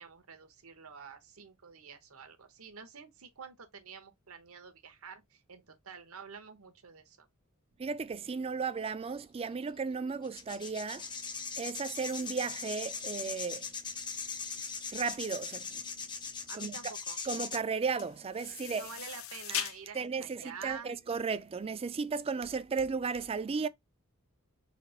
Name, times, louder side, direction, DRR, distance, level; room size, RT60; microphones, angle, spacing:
voice 1, 0.0-7.3 16.5-17.2 18.6-20.9, right 6 dB, 75° right, 1.0 m, -48 dB
voice 2, 7.8-11.1 11.6-13.7 14.9-15.8 16.5-16.9 17.2-18.9 19.9-23.7, right 5 dB, 25° right, 0.4 m, -35 dB
sound 1, 9.4-9.5 10.2-17.6, left 5 dB, 20° left, 0.6 m, -40 dB
sound 2, 12.0-21.6, left 10 dB, 70° left, 0.6 m, -44 dB
4.1 x 2.4 x 4.2 m
head